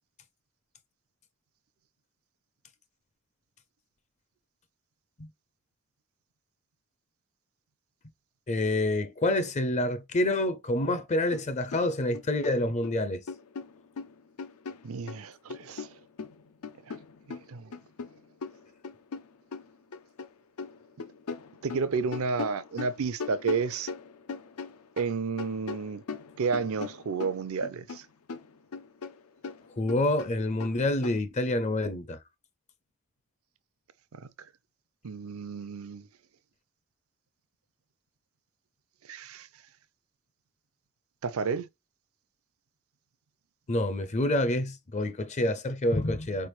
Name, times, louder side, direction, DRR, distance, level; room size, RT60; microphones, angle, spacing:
voice 1, 8.5-13.2 29.8-32.2 43.7-46.5, left 1 dB, 30° left, 0.5 m, -27 dB
sound 1, 11.3-11.5 11.7-12.9 13.3-15.2 15.5-20.3 20.6-25.1 25.4-28.0 28.3-31.2, left 5 dB, 85° left, 0.6 m, -40 dB
voice 2, 14.8-15.9 16.9-17.0 17.3-17.7 21.6-23.9 25.0-26.0 26.4-28.1 34.1-34.3 35.0-36.1 39.1-39.5 41.2-41.7, right 5 dB, 70° right, 0.5 m, -31 dB
4.5 x 3.3 x 3.1 m
head